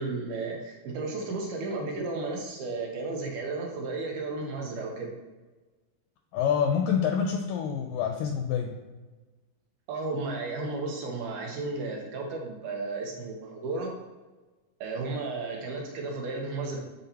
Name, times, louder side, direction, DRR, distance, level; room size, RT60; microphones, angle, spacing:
voice 1, 0.0-5.1 9.9-13.9 14.8-16.8, right 3 dB, 80° right, 0 dB, 2.8 m, -33 dB
voice 2, 6.3-8.7, left 7 dB, 85° left, 2 dB, 1.9 m, -27 dB
9.6 x 3.9 x 2.9 m, 1.2 s
omnidirectional pair, 4.3 m